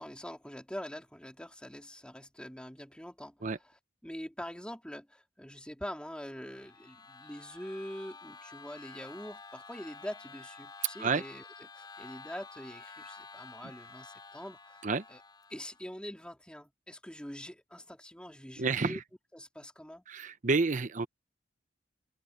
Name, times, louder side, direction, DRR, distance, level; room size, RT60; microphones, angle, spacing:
voice 1, 0.0-15.2 15.5-19.0 19.3-20.0, equal, 5° left, 3.4 m, -44 dB
sound 1, 6.2-15.9, left 4 dB, 25° left, 3.4 m, -50 dB
voice 2, 18.6-19.0 20.1-21.1, right 4 dB, 45° right, 0.8 m, -29 dB
head